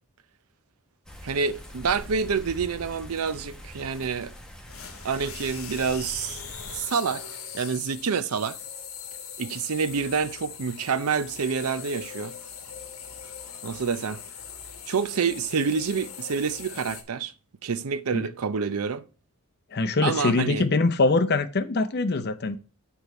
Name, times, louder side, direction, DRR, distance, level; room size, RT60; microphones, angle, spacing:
sound 1, 1.1-6.8, equal, 5° left, 1.0 m, -43 dB
voice 1, 1.2-4.3 5.0-7.2 7.5-8.6 9.4-12.4 13.6-14.2 14.9-17.3 17.6-19.0 20.0-20.6, right 5 dB, 85° right, 0.6 m, -27 dB
sound 2, 4.7-17.0, left 7 dB, 65° left, 1.2 m, -41 dB
voice 2, 19.7-22.6, left 3 dB, 50° left, 0.7 m, -23 dB
6.9 x 4.6 x 5.4 m
head